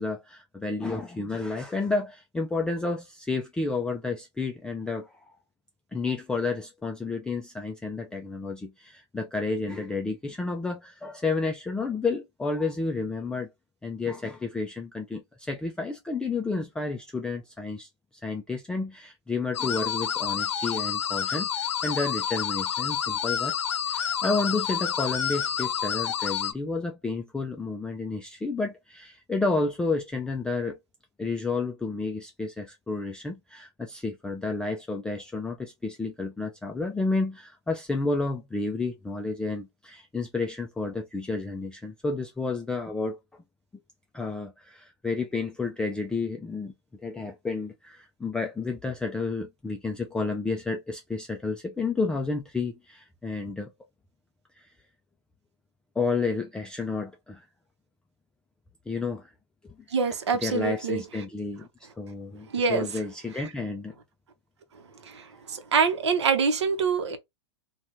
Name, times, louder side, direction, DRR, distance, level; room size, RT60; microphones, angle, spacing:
voice 1, 0.0-5.3 5.9-13.5 13.8-17.9 18.2-23.5 23.8-30.8 31.2-43.2 44.1-46.7 47.0-53.7 54.6-54.7 56.0-57.4 58.9-59.3 59.6-59.7 60.4-63.9, left 3 dB, 5° left, 0.3 m, -31 dB
sound 1, 19.5-26.5, left 8 dB, 85° left, 0.5 m, -29 dB
voice 2, 59.9-61.0 62.5-62.9 65.1-65.2 65.5-67.2, right 5 dB, 80° right, 0.8 m, -25 dB
2.6 x 2.2 x 3.0 m
hypercardioid pair, 120°, 14 cm